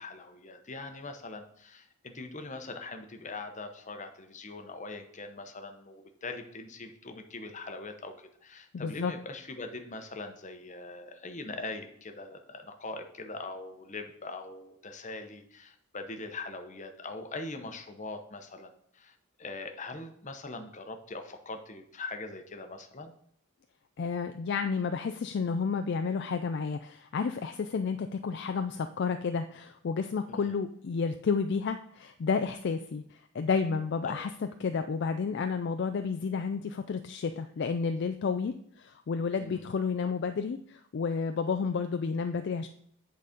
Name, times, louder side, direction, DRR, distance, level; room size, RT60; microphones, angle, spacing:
voice 1, 0.0-23.1 30.3-30.5 34.0-34.2 39.4-39.7, left 3 dB, 35° left, 6 dB, 0.8 m, -42 dB
voice 2, 8.7-9.1 24.0-42.7, left 5 dB, 50° left, 8 dB, 0.3 m, -31 dB
8.6 x 4.0 x 5.1 m, 0.66 s
head